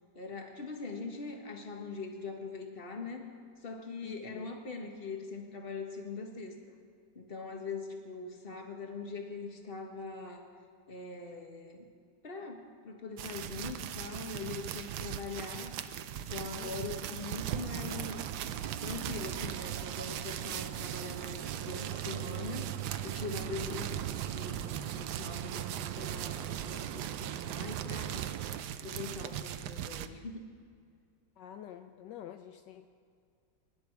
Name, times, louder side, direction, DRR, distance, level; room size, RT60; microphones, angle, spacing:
voice 1, 0.1-3.3 3.6-6.5 7.1-10.5 10.9-11.8 12.2-15.8 16.2-18.2 18.8-22.7 23.0-24.0 24.3-28.3 28.8-30.5, left 4 dB, 35° left, 3 dB, 1.7 m, -42 dB
voice 2, 4.0-4.6 8.5-8.7 16.6-17.2 23.6-23.8 29.0-29.2 31.4-32.9, left 10 dB, 75° left, 7 dB, 1.2 m, -49 dB
sound 1, 13.2-30.1, right 10 dB, 70° right, 1.2 m, -40 dB
sound 2, 17.4-28.6, right 12 dB, 90° right, 1.3 m, -40 dB
23.0 x 11.5 x 4.7 m, 2.2 s
omnidirectional pair, 1.9 m